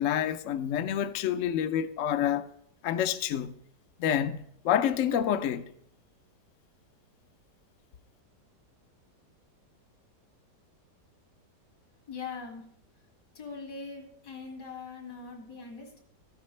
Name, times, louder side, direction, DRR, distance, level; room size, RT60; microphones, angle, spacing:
voice 1, 0.0-2.5 2.8-3.5 4.0-5.7, left 10 dB, 65° left, 0.8 m, -28 dB
voice 2, 12.1-12.7 13.3-16.0, left 4 dB, 85° left, 2.7 m, -41 dB
14.0 x 10.0 x 3.2 m
omnidirectional pair, 1.8 m